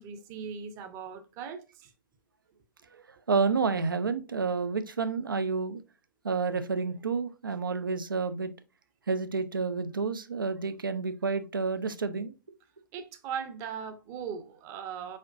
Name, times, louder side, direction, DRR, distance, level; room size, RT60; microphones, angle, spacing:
voice 1, 0.0-1.9 12.9-15.2, right 7 dB, 25° right, 0.7 m, -39 dB
voice 2, 3.3-5.8 6.2-8.5 9.1-12.3, right 4 dB, 75° right, 0.5 m, -29 dB
4.6 x 4.3 x 2.4 m
figure-of-eight pair, 115°, 11 cm